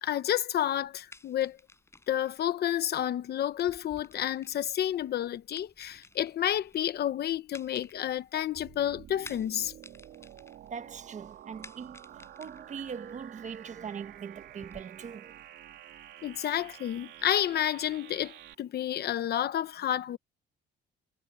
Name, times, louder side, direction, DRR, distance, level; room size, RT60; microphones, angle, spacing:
voice 1, 0.0-1.6 2.1-9.7 16.2-20.2, left 11 dB, 55° left, 1.0 m, -30 dB
sound 1, 0.8-14.8, left 2 dB, 15° left, 7.7 m, -55 dB
sound 2, 8.5-18.5, right 11 dB, 75° right, 3.4 m, -50 dB
voice 2, 10.7-15.3, right 7 dB, 40° right, 1.4 m, -41 dB
cardioid pair, 140°, 19 cm